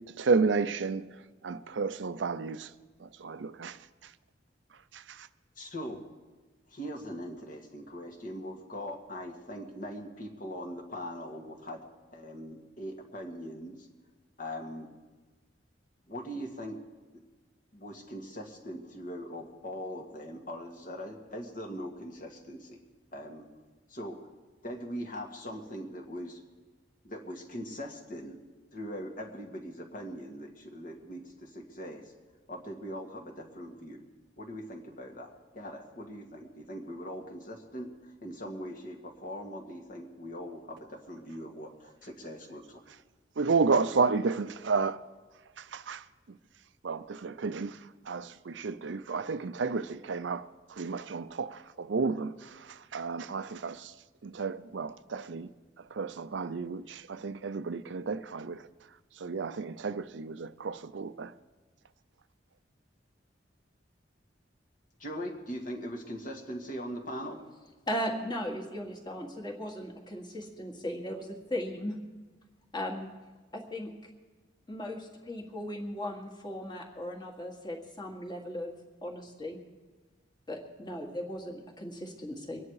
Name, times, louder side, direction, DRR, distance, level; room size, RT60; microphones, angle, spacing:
voice 1, 0.2-1.0 1.4-2.7 3.0-3.8 4.9-5.3 43.4-45.0 45.6-46.0 46.8-47.8 48.1-53.9 54.2-55.5 55.9-58.6 59.2-61.3, right 4 dB, 80° right, 0.6 m, -31 dB
voice 2, 5.6-6.0 6.7-11.8 12.1-13.9 14.4-14.9 16.1-16.8 17.7-22.8 23.1-23.5 23.9-24.3 24.6-26.4 27.0-28.4 28.7-32.1 32.5-34.0 34.4-42.8 65.0-67.4, equal, 45° left, 1.9 m, -41 dB
voice 3, 67.9-72.0 72.7-73.1 73.5-73.9 74.7-78.7 79.0-79.6 80.5-82.6, equal, 25° left, 1.9 m, -37 dB
23.5 x 9.7 x 4.8 m
head